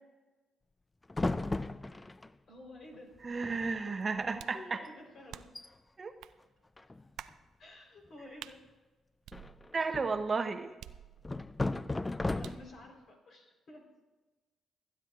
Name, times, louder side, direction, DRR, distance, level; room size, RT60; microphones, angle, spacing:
bookcase rattling, 1.1-2.3 3.2-3.3 3.4-3.8 4.1-4.3 4.9-5.0 5.4-5.7 6.8-7.3 9.3-10.3 11.2-12.9, left 2 dB, 20° left, 0.4 m, -35 dB
voice 1, 2.5-3.2 3.9-4.0 4.5-5.4 7.6-8.7 12.3-13.8, left 1 dB, 60° left, 1 dB, 3.6 m, -51 dB
voice 2, 3.2-4.8 6.0-6.1 9.7-10.7, right 4 dB, 40° right, 9 dB, 0.7 m, -33 dB
sound 1, 4.4-4.7 5.3-5.7 6.2-6.4 7.2-7.4 8.4-8.6 9.3-9.9 10.8-11.5 12.4-12.7, right 11 dB, 80° right, 0.3 m, -49 dB
27.5 x 9.6 x 2.4 m, 1.2 s
supercardioid pair, 60°, 0 cm